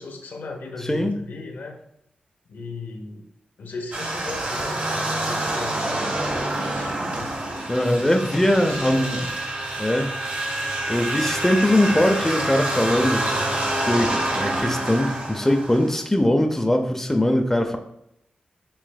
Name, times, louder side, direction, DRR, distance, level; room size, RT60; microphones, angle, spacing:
voice 1, 0.0-1.8 2.5-3.3 3.6-7.4 7.9-9.3 11.9-13.6 14.4-14.8, left 3 dB, 85° left, 2 dB, 0.8 m, -37 dB
sound 1, 3.9-16.0, right 1 dB, 50° right, 1.2 m, -27 dB
voice 2, 7.7-9.2 9.8-10.1 10.9-13.2 13.9-17.8, left 1 dB, 10° left, 4 dB, 0.5 m, -21 dB
7.4 x 3.1 x 2.3 m, 0.77 s
wide cardioid pair, 100°, 3 cm